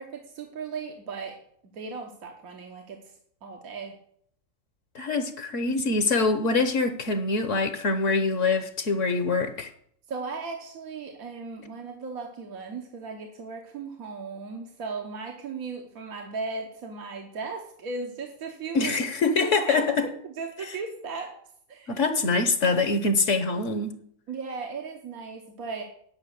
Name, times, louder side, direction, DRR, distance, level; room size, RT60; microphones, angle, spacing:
voice 1, 0.0-1.4 1.7-3.1 3.4-4.0 10.1-19.0 19.4-19.9 20.2-21.4 21.7-22.0 22.6-22.8 24.3-25.8, right 4 dB, 80° right, 1.6 m, -37 dB
voice 2, 4.9-9.7 18.7-20.1 21.9-23.9, left 3 dB, 60° left, 1.3 m, -24 dB
10.5 x 5.8 x 8.1 m
omnidirectional pair, 1.5 m